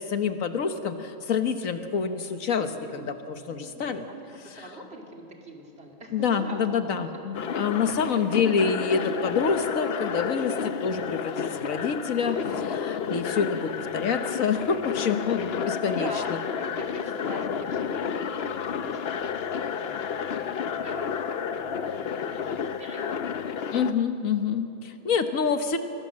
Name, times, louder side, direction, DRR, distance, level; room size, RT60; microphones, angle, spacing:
voice 1, 0.0-4.0 6.1-16.1 23.7-25.8, left 6 dB, 80° left, 8 dB, 1.6 m, -27 dB
voice 2, 2.6-3.1 3.5-6.7 7.4-7.6 12.1-12.7 15.9-20.0 20.3-23.2 25.0-25.3, right 1 dB, 50° right, 1 dB, 2.9 m, -43 dB
sound 1, 7.3-23.9, left 7 dB, 55° left, 0.9 m, -31 dB
24.0 x 18.0 x 7.5 m, 2.7 s
omnidirectional pair, 1.4 m